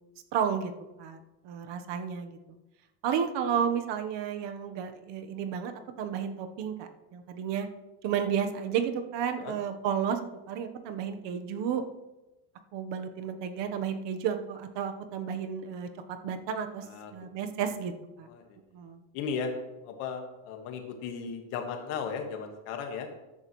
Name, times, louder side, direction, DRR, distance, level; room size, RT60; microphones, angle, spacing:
voice 1, 0.3-0.7 1.0-2.4 3.0-5.7 6.0-7.7 8.0-10.2 10.5-11.8 12.7-15.9 16.2-16.8 17.1-17.9 18.2-18.3 18.7-19.0, right 8 dB, 60° right, 7 dB, 1.3 m, -32 dB
voice 2, 16.8-17.1 17.6-17.7 18.3-18.4 19.1-19.5 19.8-23.1, left 6 dB, 85° left, 4 dB, 1.8 m, -36 dB
14.0 x 10.5 x 3.2 m, 1.0 s
cardioid pair, 155°, 49 cm